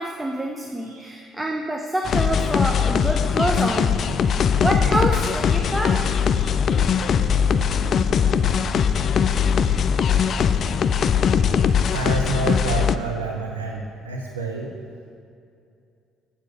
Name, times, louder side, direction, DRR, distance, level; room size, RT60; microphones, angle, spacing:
voice 1, 0.0-4.0 4.6-6.1, right 1 dB, 10° right, 2 dB, 0.7 m, -26 dB
sound 1, 2.1-13.0, left 7 dB, 50° left, 0.3 m, -20 dB
voice 2, 11.9-14.7, right 4 dB, 90° right, 0 dB, 0.5 m, -28 dB
7.4 x 6.8 x 6.0 m, 2.4 s
hypercardioid pair, 50°, 0 cm